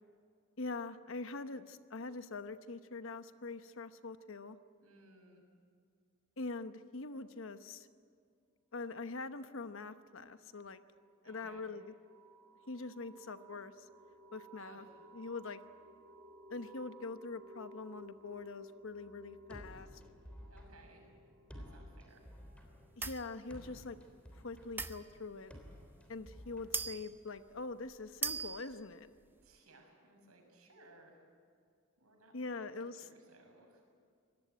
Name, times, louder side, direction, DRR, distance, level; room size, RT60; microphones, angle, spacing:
voice 1, 0.6-4.6 6.4-7.9 8.7-10.8 11.2-11.9 12.7-13.9 14.3-14.8 15.1-15.6 16.5-19.9 23.0-24.0 24.3-25.6 26.1-29.2 32.3-33.1, left 3 dB, 65° left, 11 dB, 1.0 m, -44 dB
voice 2, 4.8-5.4 11.2-11.6 14.6-14.9 20.5-21.1 21.6-22.2 29.4-31.2 32.0-33.8, right 2 dB, 85° right, 2 dB, 6.7 m, -61 dB
sound 1, 10.1-24.5, right 1 dB, 65° right, 1.9 m, -58 dB
sound 2, 19.5-27.4, equal, 5° left, 3.4 m, -54 dB
sound 3, 23.0-23.3 24.8-25.4 26.2-26.3 26.7-27.2 27.6-27.7 28.1-28.8, right 4 dB, 10° right, 0.7 m, -39 dB
24.5 x 18.5 x 9.3 m, 2.3 s
head